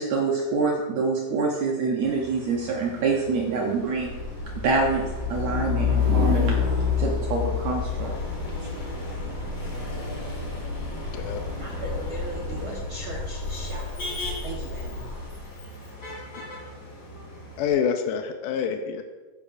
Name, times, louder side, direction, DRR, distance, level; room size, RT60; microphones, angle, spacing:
voice 1, 0.0-4.2 4.5-8.2, right 4 dB, 85° right, 0 dB, 1.5 m, -26 dB
Motor vehicle (road), 2.0-17.7, left 1 dB, 35° left, 2.8 m, -40 dB
Truck, 4.1-15.3, left 6 dB, 60° left, 2.9 m, -29 dB
sound 1, 5.7-12.8, right 2 dB, 45° right, 0.8 m, -41 dB
voice 2, 11.2-15.0, right 1 dB, 70° right, -3 dB, 1.2 m, -39 dB
voice 3, 17.6-19.0, left 7 dB, 80° left, 6 dB, 1.9 m, -27 dB
13.5 x 9.7 x 2.6 m, 1.3 s
omnidirectional pair, 4.4 m